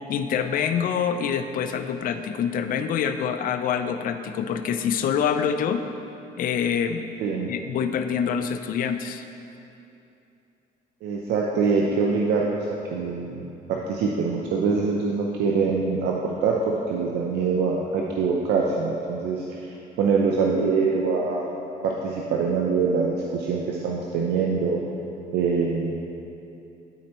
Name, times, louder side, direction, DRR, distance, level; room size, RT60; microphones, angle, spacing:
voice 1, 0.1-5.8 6.4-7.1 7.5-9.2, left 7 dB, 55° left, 8 dB, 0.5 m, -26 dB
voice 2, 7.2-7.5 11.0-12.6 12.9-21.5 21.8-24.8 25.3-26.0, right 5 dB, 75° right, -1 dB, 0.6 m, -24 dB
12.0 x 4.3 x 3.0 m, 2.8 s
cardioid pair, 110°, 17 cm